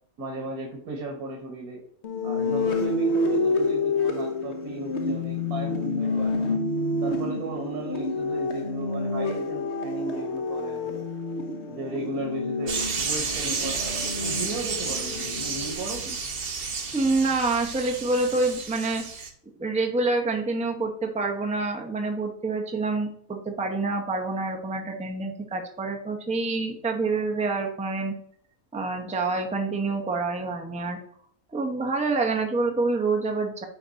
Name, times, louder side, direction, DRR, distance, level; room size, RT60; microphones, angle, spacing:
voice 1, 0.2-1.8 2.2-6.6 7.0-11.1 11.7-16.2, right 2 dB, 90° right, 2 dB, 1.7 m, -36 dB
sound 1, 2.0-15.7, left 2 dB, 55° left, 1.1 m, -28 dB
sound 2, 12.7-19.3, right 5 dB, 45° right, 1.0 m, -31 dB
voice 2, 16.9-19.3 19.6-28.1 28.7-31.0 31.5-33.6, right 3 dB, 5° right, 2 dB, 0.7 m, -27 dB
9.2 x 3.9 x 4.0 m, 0.62 s
omnidirectional pair, 1.5 m